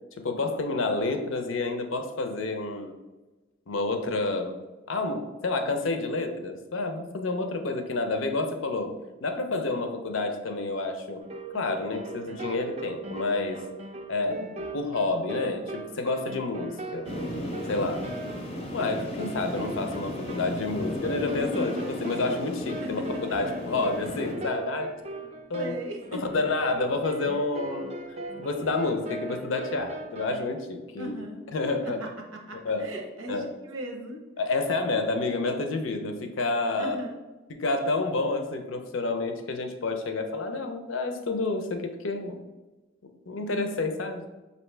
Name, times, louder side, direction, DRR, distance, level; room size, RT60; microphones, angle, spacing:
voice 1, 0.2-2.9 3.7-4.5 4.9-8.9 9.2-11.2 11.5-13.6 14.1-14.4 14.7-17.1 17.7-18.1 18.7-24.9 25.5-25.7 26.1-28.0 28.4-31.2 31.5-32.0 32.6-32.9 33.3-33.4 34.4-37.0 37.5-42.4 43.3-44.3, left 3 dB, 75° left, 5 dB, 0.5 m, -29 dB
sound 1, 11.2-30.4, right 2 dB, 30° right, 0.4 m, -39 dB
sound 2, 17.0-24.3, left 1 dB, 30° left, 0.6 m, -35 dB
voice 2, 25.6-26.2 31.0-31.5 32.0-32.1 32.5-34.2 36.8-37.2, right 1 dB, 85° right, 2 dB, 0.8 m, -38 dB
5.3 x 2.7 x 3.2 m, 1.1 s
head